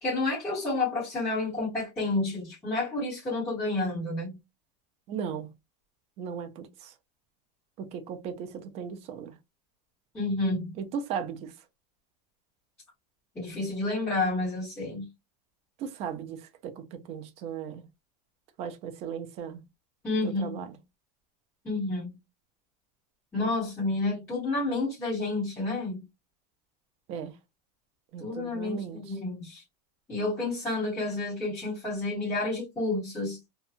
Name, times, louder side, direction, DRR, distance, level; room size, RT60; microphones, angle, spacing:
voice 1, 0.0-4.4 10.1-10.7 13.3-15.0 20.0-20.6 21.6-22.1 23.3-26.0 28.2-29.6 30.1-33.4, left 2 dB, 10° left, 1.1 m, -30 dB
voice 2, 5.1-5.5 6.2-6.9 7.8-9.3 10.8-11.5 15.8-17.9 18.6-19.6 20.2-20.8 27.1-27.3 28.1-29.0, right 7 dB, 30° right, 0.4 m, -37 dB
2.7 x 2.2 x 2.4 m
supercardioid pair, 165°, 21 cm